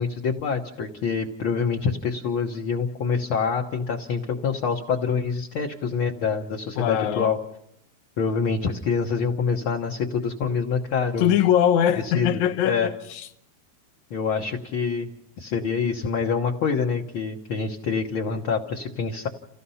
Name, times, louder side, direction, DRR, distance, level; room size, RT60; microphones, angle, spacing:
voice 1, 0.0-7.4 8.2-11.4 12.0-12.3 12.6-12.9 14.1-15.1 15.4-19.3, left 5 dB, 55° left, 1.7 m, -26 dB
voice 2, 6.8-7.3 11.2-13.3, left 10 dB, 75° left, 2.3 m, -22 dB
29.0 x 16.0 x 5.6 m
omnidirectional pair, 3.4 m